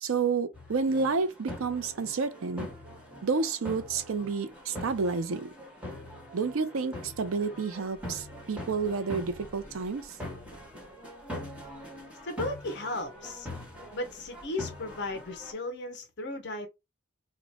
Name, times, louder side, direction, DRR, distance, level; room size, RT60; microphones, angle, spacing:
voice 1, 0.0-2.7 3.2-5.5 6.3-10.2, right 4 dB, 65° right, 0.5 m, -30 dB
sound 1, 0.5-15.5, left 1 dB, 5° right, 1.3 m, -43 dB
voice 2, 12.2-13.5 13.9-16.7, left 2 dB, 50° left, 0.7 m, -35 dB
2.9 x 2.2 x 4.1 m
head